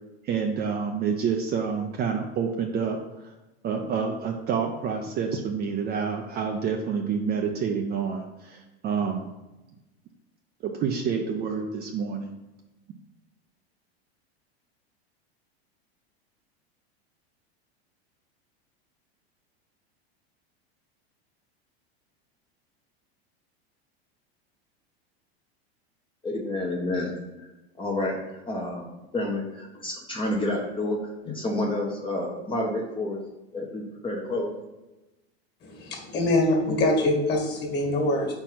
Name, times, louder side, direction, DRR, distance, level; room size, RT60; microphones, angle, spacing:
voice 1, 0.2-3.3 3.6-9.3 10.6-12.3, right 6 dB, 30° right, 3 dB, 0.5 m, -28 dB
voice 2, 26.2-27.1 27.8-28.2 28.5-28.8 29.1-31.0 31.2-33.2 33.5-34.5, left 1 dB, 15° left, -1 dB, 0.8 m, -29 dB
voice 3, 35.6-38.3, left 1 dB, 30° left, 2 dB, 1.8 m, -24 dB
4.4 x 4.4 x 5.7 m, 1.0 s
supercardioid pair, 115°, 32 cm